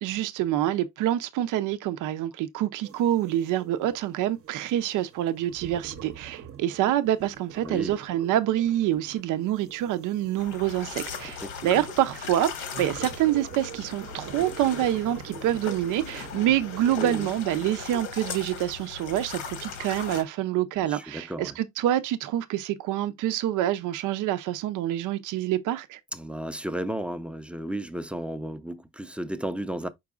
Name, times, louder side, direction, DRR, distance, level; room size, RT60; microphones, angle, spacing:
voice 1, 0.0-26.0, right 12 dB, 85° right, 0.5 m, -26 dB
sound 1, 2.8-17.1, right 8 dB, 50° right, 0.7 m, -44 dB
voice 2, 7.6-7.9 11.4-11.8 17.0-17.3 20.9-21.5 26.1-29.9, right 1 dB, 5° right, 0.5 m, -33 dB
sound 2, 10.4-20.2, left 6 dB, 80° left, 1.2 m, -38 dB
4.9 x 4.6 x 2.3 m
cardioid pair, 90°, 30 cm